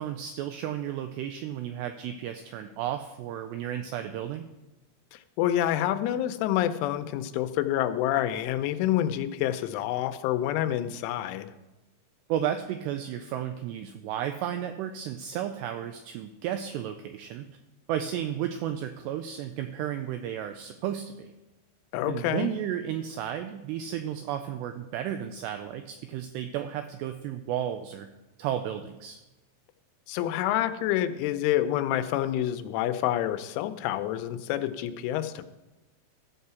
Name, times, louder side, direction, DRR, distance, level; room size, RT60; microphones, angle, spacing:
voice 1, 0.0-4.4 12.3-17.5 17.9-21.3 22.1-28.1 28.4-29.2, right 10 dB, 85° right, 8 dB, 2.5 m, -33 dB
voice 2, 5.1-11.5 21.9-22.5 30.1-35.4, left 12 dB, 90° left, 10 dB, 3.1 m, -28 dB
14.0 x 5.6 x 6.9 m, 1.0 s
omnidirectional pair, 5.4 m